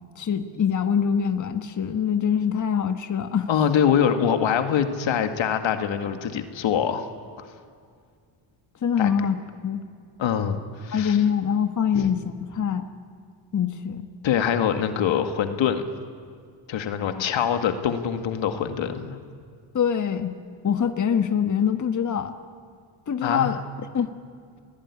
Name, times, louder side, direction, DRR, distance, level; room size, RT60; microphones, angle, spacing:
voice 1, 0.2-3.5 8.8-9.4 9.6-9.8 10.9-12.9 13.5-14.1 17.1-17.3 19.7-20.3 20.6-22.4 23.1-23.5 23.9-24.1, left 7 dB, 40° left, 8 dB, 1.4 m, -24 dB
voice 2, 3.5-7.1 7.4-7.5 9.0-9.1 10.2-11.2 11.9-12.1 14.2-15.9 16.7-19.2 23.2-23.6, left 8 dB, 75° left, 7 dB, 2.2 m, -24 dB
29.5 x 19.0 x 9.9 m, 2.1 s
cardioid pair, 100°, 47 cm